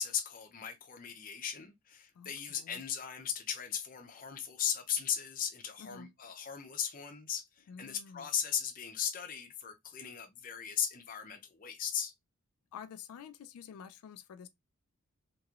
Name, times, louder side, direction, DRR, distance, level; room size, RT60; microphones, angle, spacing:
voice 1, 0.0-12.1, left 8 dB, 40° left, 0.5 m, -37 dB
voice 2, 2.1-2.8 5.8-6.1 7.7-8.3 12.7-14.5, left 7 dB, 90° left, 0.3 m, -49 dB
2.9 x 2.9 x 2.3 m
head